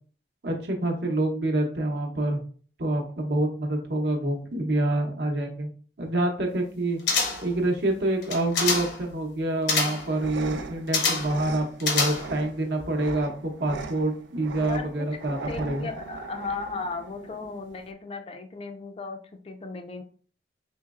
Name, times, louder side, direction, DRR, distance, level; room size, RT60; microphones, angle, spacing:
voice 1, 0.4-2.4 2.8-5.7 6.0-7.0 7.4-15.9, right 1 dB, 65° right, 3 dB, 0.8 m, -27 dB
sound 1, 7.1-7.6 8.2-9.0 9.7-10.1 10.9-11.4 11.8-12.5 12.8-12.9, left 4 dB, 75° left, 0.8 m, -26 dB
sound 2, 10.0-17.9, right 4 dB, 90° right, 0.4 m, -40 dB
voice 2, 14.6-14.9 15.3-20.0, left 4 dB, 30° left, 6 dB, 0.4 m, -36 dB
4.3 x 3.0 x 2.4 m, 0.43 s
head